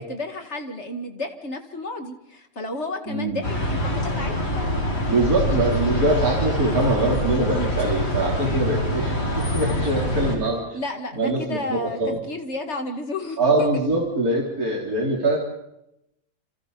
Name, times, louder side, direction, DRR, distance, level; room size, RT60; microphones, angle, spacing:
voice 1, 0.0-4.3 9.1-9.8 10.7-13.7, left 2 dB, 35° left, 5 dB, 2.2 m, -32 dB
voice 2, 3.1-3.4 5.1-10.8 11.1-12.2 13.4-15.4, right 2 dB, 50° right, -3 dB, 3.9 m, -23 dB
sound 1, 3.4-10.4, left 1 dB, 75° left, 5.2 m, -25 dB
29.5 x 27.5 x 4.1 m, 0.85 s
omnidirectional pair, 2.0 m